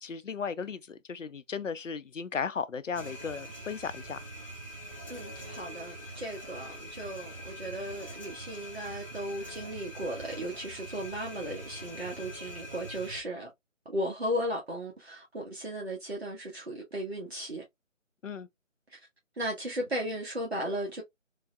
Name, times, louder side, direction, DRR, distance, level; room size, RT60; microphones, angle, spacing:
voice 1, 0.0-4.2 18.2-18.5, left 6 dB, 70° left, 0.5 m, -36 dB
sound 1, 2.9-13.2, right 1 dB, 25° right, 1.0 m, -44 dB
voice 2, 5.1-13.5 13.8-17.6 19.4-21.0, equal, 50° right, 1.1 m, -36 dB
3.7 x 2.0 x 2.4 m
figure-of-eight pair, 155°, 39 cm